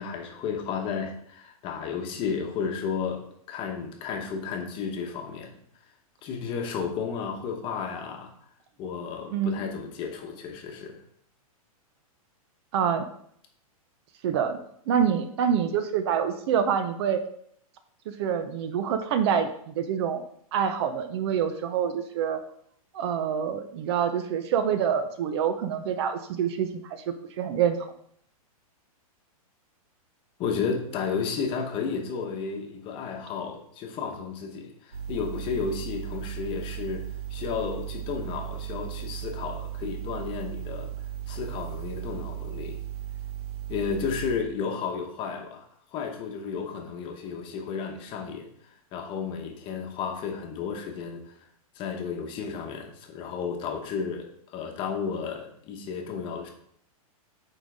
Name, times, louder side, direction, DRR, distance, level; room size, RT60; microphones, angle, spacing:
voice 1, 0.0-3.2 3.5-5.6 6.2-8.3 8.8-11.0 30.4-40.9 41.3-42.8 43.7-45.6 45.9-48.5 48.9-51.3 51.7-56.5, left 6 dB, 25° left, 3 dB, 1.1 m, -33 dB
voice 2, 9.3-9.6 12.7-13.1 14.2-14.6 14.9-17.2 18.1-20.2 20.5-22.4 22.9-27.8, right 8 dB, 45° right, 9 dB, 0.7 m, -26 dB
sound 1, 34.9-44.4, right 12 dB, 85° right, 1.4 m, -36 dB
9.0 x 3.9 x 3.6 m, 0.67 s
hypercardioid pair, 150°, 19 cm